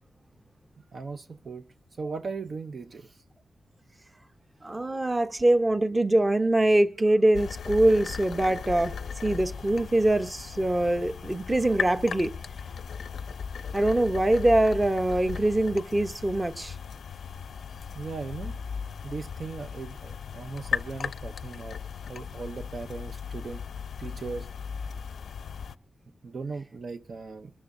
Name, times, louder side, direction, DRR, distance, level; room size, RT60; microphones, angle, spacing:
voice 1, 0.9-1.7 2.0-3.2 17.9-18.6 19.0-21.8 22.1-23.6 24.0-24.5 26.2-27.5, right 4 dB, 50° right, 0.6 m, -38 dB
voice 2, 4.6-8.9 9.2-12.3 13.7-16.7, right 1 dB, 20° right, 0.9 m, -23 dB
sound 1, 7.3-25.8, left 6 dB, 80° left, 0.6 m, -37 dB
23.5 x 13.0 x 2.6 m
wide cardioid pair, 140°, 0 cm